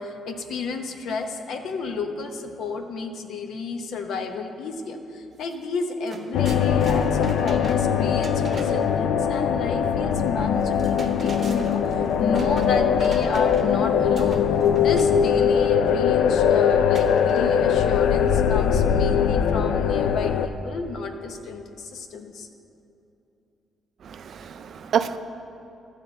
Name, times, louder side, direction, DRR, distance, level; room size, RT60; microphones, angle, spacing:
voice 1, 0.0-14.4 14.8-22.5, left 4 dB, 60° left, 6 dB, 0.8 m, -32 dB
sound 1, 5.4-5.5 5.8-8.9 10.6-13.8 14.2-15.2 16.9-17.8, right 3 dB, 30° right, 0.8 m, -41 dB
sound 2, 6.3-20.5, left 7 dB, 90° left, 0.4 m, -21 dB
voice 2, 24.0-25.2, right 8 dB, 45° right, 11 dB, 0.4 m, -27 dB
12.0 x 4.5 x 7.7 m, 2.8 s
cardioid pair, 170°, 0 cm